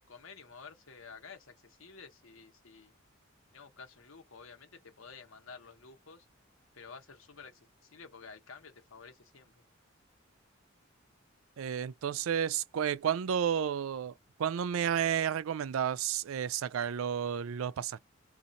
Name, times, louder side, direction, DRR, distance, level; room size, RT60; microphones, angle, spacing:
voice 1, 0.1-2.9 3.5-6.3 6.7-9.6, left 5 dB, 80° left, 1.1 m, -51 dB
voice 2, 11.6-14.1 14.4-18.0, right 8 dB, 90° right, 0.4 m, -31 dB
2.6 x 2.5 x 4.1 m
head